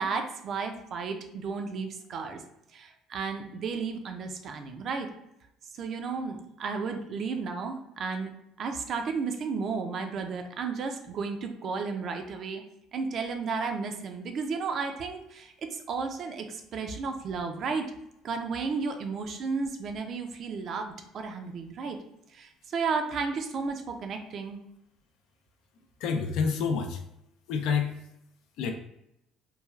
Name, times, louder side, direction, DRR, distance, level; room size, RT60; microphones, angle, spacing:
voice 1, 0.0-2.4 2.7-5.1 5.8-8.3 8.6-12.6 12.9-17.9 18.2-22.0 22.3-24.6, right 5 dB, 55° right, 5 dB, 0.4 m, -33 dB
voice 2, 26.0-27.0 27.5-27.9 28.6-28.7, left 6 dB, 75° left, 5 dB, 0.4 m, -28 dB
3.1 x 2.3 x 2.3 m, 0.80 s
supercardioid pair, 75°, 0 cm